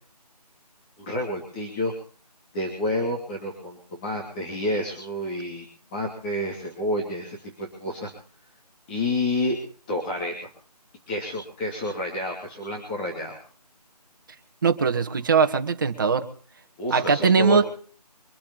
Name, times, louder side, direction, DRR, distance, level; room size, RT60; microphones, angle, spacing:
voice 1, 1.0-1.9 2.5-5.7 5.9-8.1 8.9-9.6 9.9-10.5 11.1-13.4 16.8-17.6, left 1 dB, 15° left, -3 dB, 2.9 m, -29 dB
voice 2, 14.6-16.3 16.9-17.6, right 5 dB, 30° right, 7 dB, 2.0 m, -20 dB
25.0 x 8.6 x 5.7 m, 0.44 s
figure-of-eight pair, 165°, 21 cm